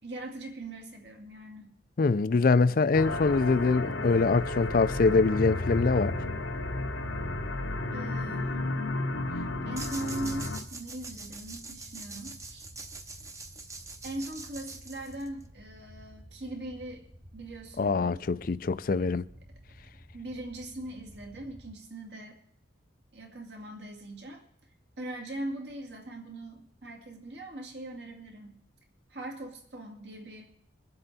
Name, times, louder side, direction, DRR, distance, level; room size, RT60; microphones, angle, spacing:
voice 1, 0.0-1.7 7.9-8.7 9.6-12.7 14.0-17.0 17.3-18.2 20.1-22.4 23.1-24.4 25.0-28.5 29.1-30.4, right 1 dB, 65° right, 2.3 m, -40 dB
voice 2, 2.0-6.1 17.8-19.2, left 4 dB, 50° left, 0.4 m, -24 dB
sound 1, 2.9-10.6, left 2 dB, 85° left, 1.0 m, -32 dB
sound 2, 6.2-21.7, equal, 40° right, 2.0 m, -53 dB
sound 3, 9.8-15.5, right 3 dB, 15° right, 0.7 m, -44 dB
23.0 x 7.8 x 4.1 m
head